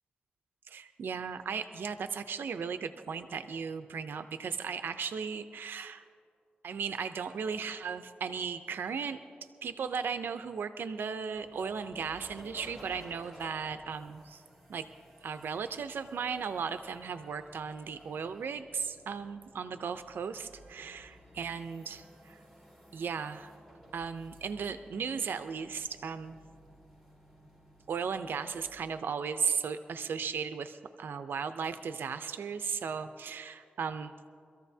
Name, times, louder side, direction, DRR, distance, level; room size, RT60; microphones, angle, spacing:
voice 1, 0.7-6.0 6.6-9.2 9.6-14.4 14.7-14.9 15.2-22.4 22.9-23.5 23.9-26.4 27.9-34.3, right 6 dB, 85° right, 9 dB, 0.5 m, -36 dB
sound 1, 11.3-28.7, equal, 5° left, 3.7 m, -56 dB
24.5 x 14.0 x 2.7 m, 2.3 s
wide cardioid pair, 85°, 3 cm